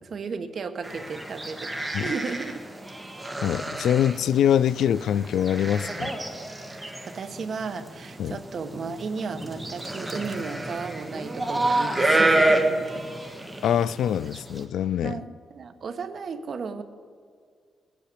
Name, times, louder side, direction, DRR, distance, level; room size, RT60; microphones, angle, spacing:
voice 1, 0.0-1.7 2.0-2.6 7.1-13.0 15.0-16.8, right 5 dB, 45° right, 1.1 m, -34 dB
sound 1, 0.8-14.6, right 2 dB, 10° right, 1.5 m, -29 dB
voice 2, 3.4-6.1 8.2-8.4 13.6-15.2, left 9 dB, 80° left, 0.4 m, -24 dB
19.5 x 8.5 x 8.6 m
cardioid pair, 145°, 0 cm